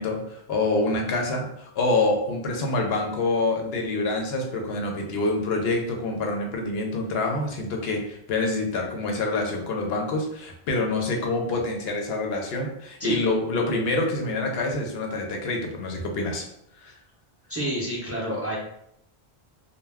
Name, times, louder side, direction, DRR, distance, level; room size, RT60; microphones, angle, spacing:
voice 1, 0.0-16.4 16.8-17.0, left 2 dB, 75° left, 2 dB, 0.8 m, -26 dB
voice 2, 17.5-18.6, right 1 dB, 15° right, -6 dB, 0.6 m, -28 dB
2.2 x 2.2 x 3.3 m, 0.77 s
omnidirectional pair, 1.1 m